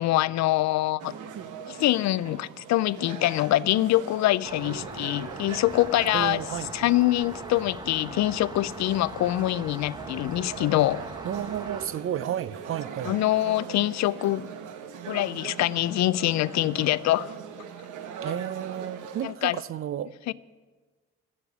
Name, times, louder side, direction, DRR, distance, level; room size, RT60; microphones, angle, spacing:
voice 1, 0.0-1.1 1.7-6.4 6.7-11.0 13.1-14.5 15.1-17.3 19.2-19.6 20.3-20.4, left 15 dB, 65° left, 0.4 m, -24 dB
sound 1, 1.0-19.3, right 7 dB, 80° right, 1.0 m, -41 dB
Rain, 4.4-11.9, right 2 dB, 15° right, 0.9 m, -41 dB
voice 2, 6.1-6.7 11.2-13.1 18.2-20.1, right 10 dB, 45° right, 0.5 m, -32 dB
11.0 x 7.2 x 8.3 m
cardioid pair, 90°, 30 cm